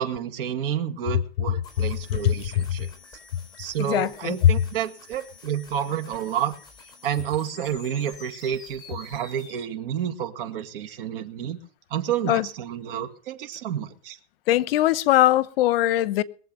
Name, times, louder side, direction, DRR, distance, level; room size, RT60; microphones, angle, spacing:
voice 1, 0.0-2.9 3.6-6.6 7.0-11.6 11.9-14.2, right 9 dB, 60° right, 2.1 m, -30 dB
sound 1, 1.6-9.6, left 4 dB, 10° left, 4.7 m, -48 dB
voice 2, 3.8-4.5 12.3-12.5 14.5-16.2, left 13 dB, 65° left, 0.9 m, -20 dB
22.0 x 7.5 x 6.7 m
supercardioid pair, 155°, 32 cm